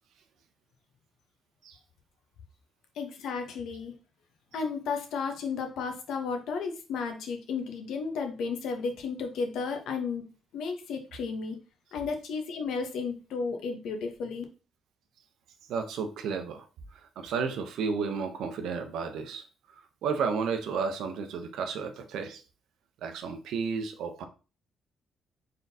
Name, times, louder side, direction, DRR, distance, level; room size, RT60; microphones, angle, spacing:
voice 1, 3.0-3.9 4.5-10.2 10.5-11.6 11.9-14.4, left 5 dB, 80° left, 4 dB, 0.9 m, -33 dB
voice 2, 15.7-16.6 17.2-19.4 20.0-22.4 23.0-24.2, right 5 dB, 80° right, 6 dB, 0.7 m, -32 dB
4.1 x 3.7 x 2.7 m, 0.34 s
cardioid pair, 90°, 0 cm